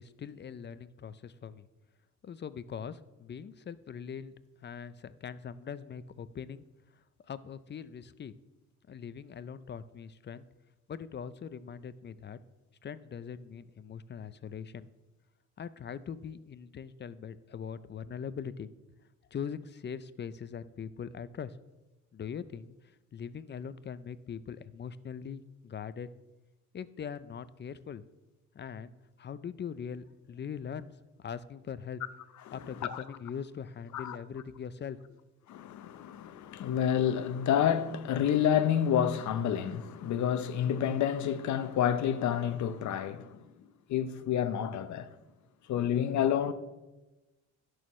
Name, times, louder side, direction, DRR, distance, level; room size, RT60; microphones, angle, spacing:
voice 1, 0.0-1.7 2.2-4.3 4.6-6.6 7.2-8.3 8.9-10.5 10.9-12.4 12.8-14.9 15.6-18.7 19.3-21.6 22.1-22.7 23.1-26.1 26.7-28.0 28.5-28.9 29.2-30.9 31.2-32.0 32.5-35.2, left 7 dB, 35° left, 0.5 m, -41 dB
voice 2, 32.5-33.0 33.9-34.2 35.5-43.4 43.9-45.1 45.7-46.5, left 9 dB, 70° left, 0.8 m, -29 dB
17.0 x 6.4 x 3.2 m
cardioid pair, 90°, 30 cm